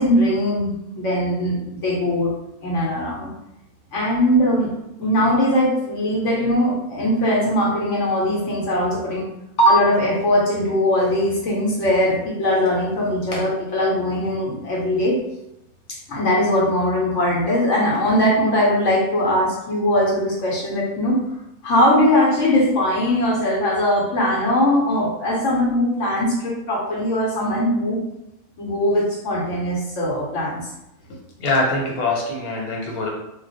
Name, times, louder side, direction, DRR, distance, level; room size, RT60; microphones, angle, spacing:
voice 1, 0.0-2.3 2.6-3.3 3.9-4.7 5.0-9.3 9.6-15.1 16.1-21.2 21.6-28.0 28.6-30.7, left 1 dB, 60° left, -3 dB, 1.0 m, -20 dB
voice 2, 31.1-33.1, left 2 dB, 75° left, -1 dB, 1.3 m, -24 dB
2.4 x 2.3 x 3.9 m, 0.87 s
omnidirectional pair, 1.6 m